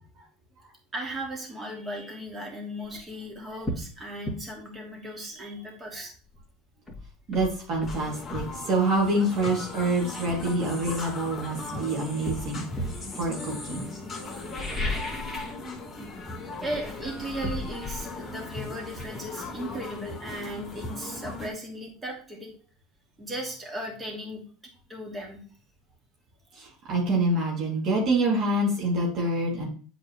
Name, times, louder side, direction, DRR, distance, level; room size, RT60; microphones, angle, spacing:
voice 1, 0.9-6.1 12.9-13.0 14.8-14.9 15.8-16.1 16.6-22.5 23.2-24.4 24.9-25.4, right 1 dB, 20° right, 0 dB, 2.6 m, -37 dB
sound 1, 2.8-3.0 3.6-3.9 4.2-4.4 6.3-6.4 6.9-8.5 9.6-9.7 10.3-11.7 12.2-13.1 14.3-15.6 15.9-16.2 16.6-20.1 20.4-20.5, left 1 dB, ahead, 2.5 m, -35 dB
voice 2, 7.3-12.6 13.2-13.9 26.5-29.7, right 2 dB, 50° right, -3 dB, 2.6 m, -26 dB
sound 2, 7.8-21.5, left 3 dB, 20° left, 2.7 m, -38 dB
8.4 x 4.6 x 3.1 m, 0.41 s
supercardioid pair, 105°, 0 cm